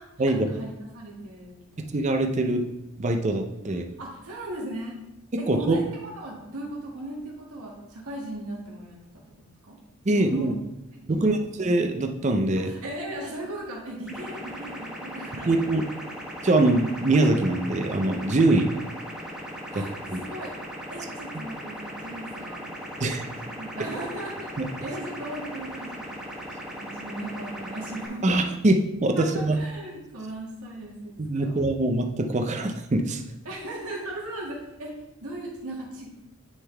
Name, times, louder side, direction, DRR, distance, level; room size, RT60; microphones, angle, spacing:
voice 1, 0.0-2.1 3.6-4.9 5.4-9.8 10.1-10.5 10.9-11.5 12.6-15.6 19.7-19.9 20.3-20.6 20.9-22.8 23.4-26.3 26.7-28.4 29.2-31.6 33.4-34.9 35.2-36.2, right 1 dB, 85° right, -3 dB, 1.8 m, -38 dB
voice 2, 1.9-2.7 3.0-3.8 5.3-5.8 10.1-10.5 11.1-12.7 15.5-15.8 16.4-18.8 19.7-19.8 20.1-20.2 23.0-23.2 24.6-24.7 28.2-28.8 29.0-29.6 31.2-33.2, right 2 dB, 35° right, 4 dB, 0.6 m, -23 dB
sound 1, 14.1-28.1, equal, 5° right, 1.0 m, -38 dB
9.7 x 3.8 x 3.3 m, 0.91 s
head